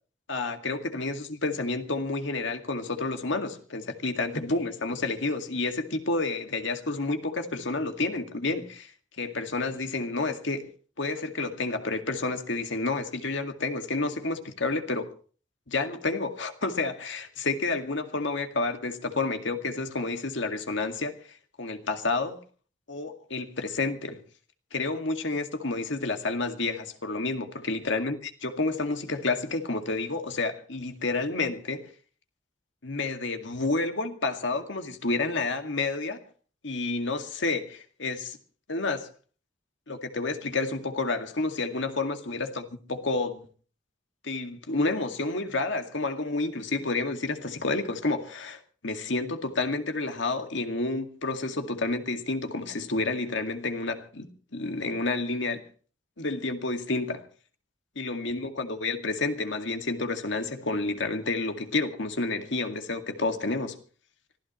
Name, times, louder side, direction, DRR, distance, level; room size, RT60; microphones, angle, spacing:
voice 1, 0.3-8.9 9.2-10.7 11.0-15.1 15.7-22.4 22.9-24.2 24.7-31.9 32.8-36.2 36.6-38.4 38.7-39.1 39.9-43.5 44.2-54.3 54.5-55.6 56.2-57.3 58.0-63.8, left 3 dB, 70° left, 2.1 m, -30 dB
25.5 x 16.0 x 3.1 m
head